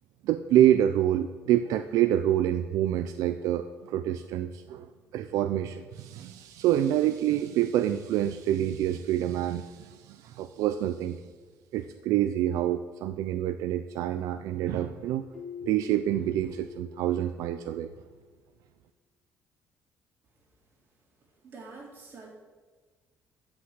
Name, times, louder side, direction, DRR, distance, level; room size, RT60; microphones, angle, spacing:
voice 1, 0.2-4.9 5.1-11.2 11.7-15.3 15.6-17.9, right 12 dB, 70° right, 9 dB, 0.6 m, -27 dB
Keyboard (musical), 15.3-18.1, left 8 dB, 5° left, 2.0 m, -45 dB
voice 2, 21.4-22.3, right 3 dB, 35° right, -2 dB, 3.9 m, -46 dB
13.5 x 6.1 x 8.0 m, 1.4 s
cardioid pair, 155°, 6 cm